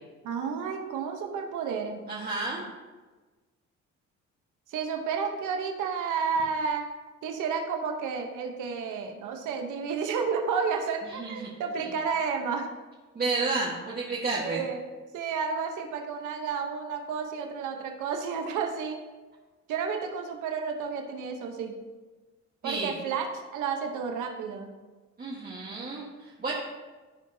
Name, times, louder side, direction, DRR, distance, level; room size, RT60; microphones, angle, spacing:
voice 1, 0.2-2.0 4.7-6.9 7.2-12.7 14.4-14.8 15.1-19.0 19.7-21.8 22.6-23.3 23.5-24.7, right 6 dB, 85° right, 3 dB, 1.0 m, -31 dB
voice 2, 2.1-2.7 11.0-11.9 13.1-14.6 22.6-22.9 25.2-26.5, right 3 dB, 30° right, -5 dB, 1.5 m, -32 dB
14.0 x 4.7 x 2.8 m, 1.3 s
cardioid pair, 90°, 30 cm